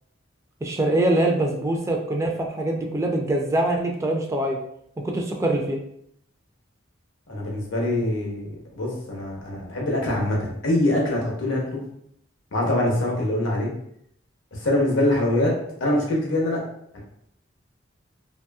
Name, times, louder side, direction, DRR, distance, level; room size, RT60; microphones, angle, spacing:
voice 1, 0.6-4.6 5.0-5.8, right 1 dB, 15° right, 1 dB, 0.3 m, -23 dB
voice 2, 7.3-11.8 12.5-13.7 14.5-16.6 16.9-17.0, left 1 dB, 80° left, -2 dB, 0.9 m, -24 dB
2.8 x 2.6 x 2.2 m, 0.72 s
head